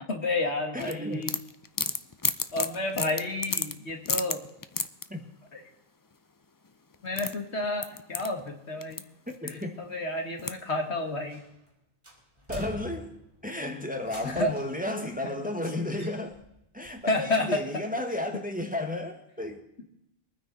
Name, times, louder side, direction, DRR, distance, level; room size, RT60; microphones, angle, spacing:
voice 1, 0.1-1.3 2.5-4.4 5.5-5.6 7.0-9.0 9.4-11.4 14.2-14.5 15.2-15.3 17.1-17.6 18.3-18.4, left 2 dB, 80° left, 4 dB, 2.3 m, -30 dB
voice 2, 0.7-1.2 5.1-5.2 9.4-9.8 12.5-16.4 16.7-19.6, left 1 dB, 10° right, 4 dB, 1.5 m, -33 dB
sound 1, 0.8-5.1 6.6-6.7 6.9-9.0 9.3-9.8 10.4-10.8, left 4 dB, 30° left, 0.4 m, -32 dB
sound 2, 11.3-11.7 12.0-13.4 14.0-14.8 15.9-16.5 16.9-17.0, left 2 dB, 25° right, 3.3 m, -44 dB
23.5 x 9.7 x 4.1 m, 0.81 s
omnidirectional pair, 1.1 m